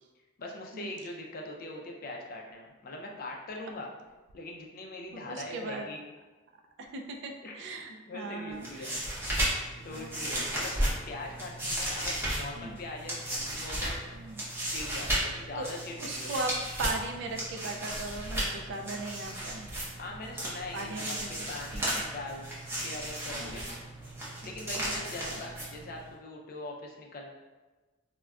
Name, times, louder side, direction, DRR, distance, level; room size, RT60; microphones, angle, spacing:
voice 1, 0.4-3.9 4.3-6.0 7.4-7.6 8.1-8.9 9.8-10.8 11.0-14.0 14.7-16.3 20.0-22.5 22.8-23.7 24.4-27.3, left 2 dB, 45° left, 0 dB, 0.4 m, -41 dB
voice 2, 5.1-5.9 6.8-9.1 9.9-10.7 12.6-12.8 14.1-14.5 15.6-15.7 16.0-16.5 16.8-19.7 20.7-21.5 21.7-22.0 23.3-23.7 24.8-25.4, right 2 dB, 60° right, 3 dB, 0.3 m, -39 dB
sound 1, 8.5-26.1, right 1 dB, 10° right, 0.6 m, -35 dB
2.3 x 2.1 x 3.5 m, 1.2 s
head